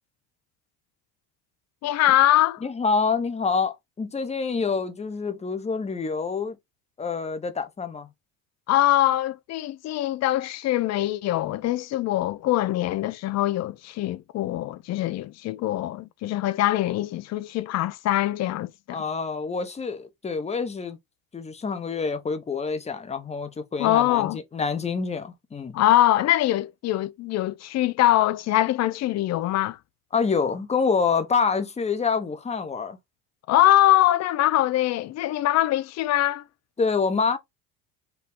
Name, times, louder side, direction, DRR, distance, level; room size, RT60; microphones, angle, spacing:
voice 1, 1.8-2.6 8.7-19.0 23.8-24.4 25.7-29.8 33.5-36.4, left 14 dB, 40° left, 0.5 m, -23 dB
voice 2, 2.6-6.6 7.0-8.1 18.9-21.0 21.3-25.8 30.1-33.0 36.8-37.4, left 5 dB, 15° left, 0.8 m, -27 dB
4.6 x 2.3 x 3.7 m
supercardioid pair, 110°, 40 cm